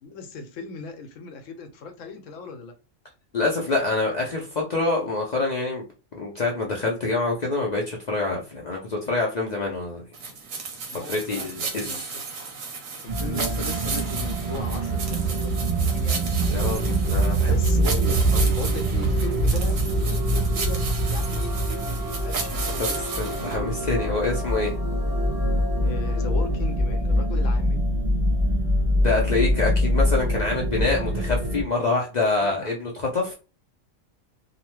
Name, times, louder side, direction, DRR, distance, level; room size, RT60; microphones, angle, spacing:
voice 1, 0.0-2.8 10.9-12.2 13.0-16.3 17.4-24.4 25.8-27.9 29.6-29.9 32.4-32.8, left 3 dB, 75° left, 0.9 m, -37 dB
voice 2, 3.3-5.9 6.2-10.0 11.0-12.1 16.5-16.8 17.1-17.6 18.3-18.5 22.8-22.9 23.2-24.7 29.0-33.3, left 3 dB, 60° left, 0.4 m, -26 dB
sound 1, 10.1-23.6, right 4 dB, 85° right, 1.2 m, -34 dB
sound 2, 13.1-31.6, right 1 dB, 10° right, 1.0 m, -24 dB
2.8 x 2.1 x 3.0 m
omnidirectional pair, 1.4 m